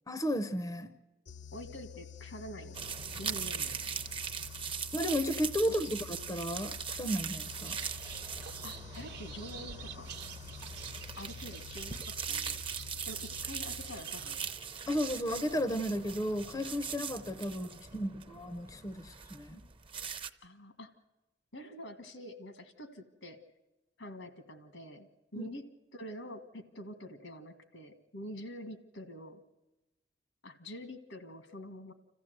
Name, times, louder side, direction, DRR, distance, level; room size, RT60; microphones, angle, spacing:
voice 1, 0.1-0.9 4.9-6.0 6.3-7.8 14.9-19.6 25.4-25.5, equal, 20° left, 13 dB, 0.6 m, -33 dB
sound 1, 1.3-14.4, left 7 dB, 65° left, 0.8 m, -49 dB
voice 2, 1.5-2.8 3.2-3.8 5.6-5.9 8.6-10.1 11.2-12.6 13.1-14.5 17.5-18.1 20.4-20.9 21.5-23.4 24.0-29.4 30.4-31.9, left 1 dB, 80° left, 9 dB, 1.6 m, -46 dB
sound 2, 2.7-20.3, right 7 dB, 30° right, 0.7 m, -41 dB
sound 3, 7.6-14.5, right 6 dB, 60° right, 1.0 m, -49 dB
26.5 x 14.5 x 7.9 m, 1.1 s
head